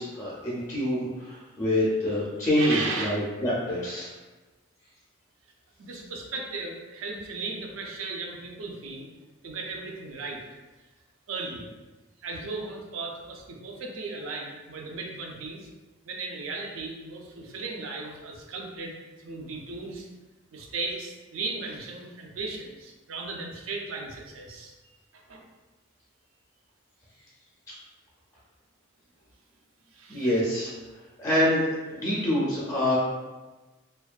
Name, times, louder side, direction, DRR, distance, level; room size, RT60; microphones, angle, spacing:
voice 1, 0.0-4.1 30.1-30.7 31.2-33.0, left 1 dB, 15° left, -7 dB, 0.4 m, -26 dB
voice 2, 2.6-3.2 5.8-9.1 9.4-10.4 11.3-11.7 12.2-15.7 16.0-18.9 19.2-20.1 20.5-24.7 25.1-25.4 29.9-30.3 32.2-32.3 32.8-33.0, right 3 dB, 75° right, 0 dB, 0.4 m, -36 dB
2.5 x 2.2 x 2.2 m, 1.2 s
head